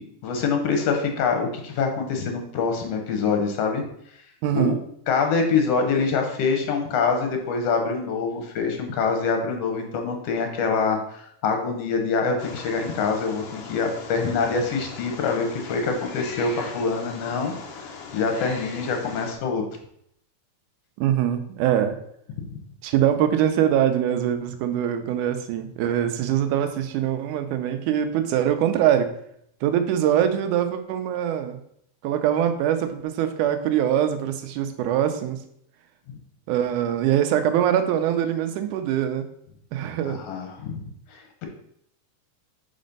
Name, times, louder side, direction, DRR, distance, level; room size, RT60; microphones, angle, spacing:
voice 1, 0.0-3.8 4.6-4.8 5.1-17.5 18.1-19.6 22.4-22.6 36.1-36.2 40.1-40.8 41.1-41.4, left 5 dB, 65° left, 4 dB, 1.9 m, -25 dB
voice 2, 4.4-4.8 21.0-21.9 22.8-29.1 29.6-31.6 32.0-35.4 36.5-39.3 39.7-40.2, right 10 dB, 80° right, 7 dB, 2.1 m, -23 dB
Wild animals, 12.4-19.4, left 5 dB, 85° left, 1.3 m, -39 dB
5.2 x 4.2 x 5.3 m, 0.71 s
omnidirectional pair, 3.7 m